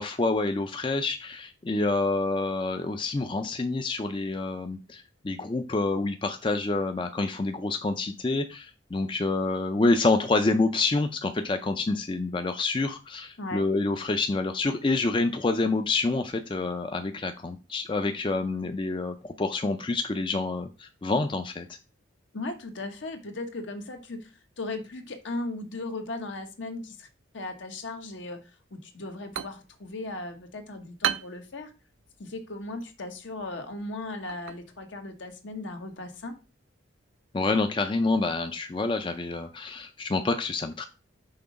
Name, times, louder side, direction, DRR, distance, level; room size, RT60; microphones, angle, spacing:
voice 1, 0.0-21.7 37.3-40.9, left 3 dB, 25° left, 7 dB, 0.4 m, -27 dB
voice 2, 22.3-24.3 24.6-27.1 27.3-31.7 32.2-36.4, left 2 dB, 70° left, 6 dB, 1.1 m, -37 dB
sound 1, 29.0-36.5, right 10 dB, 80° right, 0.4 m, -39 dB
5.8 x 3.8 x 5.0 m, 0.31 s
head